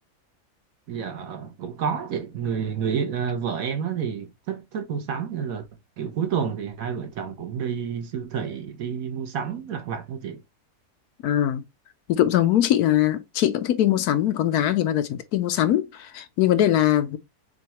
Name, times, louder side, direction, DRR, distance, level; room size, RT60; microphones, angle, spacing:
voice 1, 0.9-5.6 6.0-10.4, right 7 dB, 70° right, 1.3 m, -29 dB
voice 2, 11.2-11.6 12.1-17.2, left 12 dB, 85° left, 1.2 m, -21 dB
6.5 x 2.3 x 3.0 m
omnidirectional pair, 1.6 m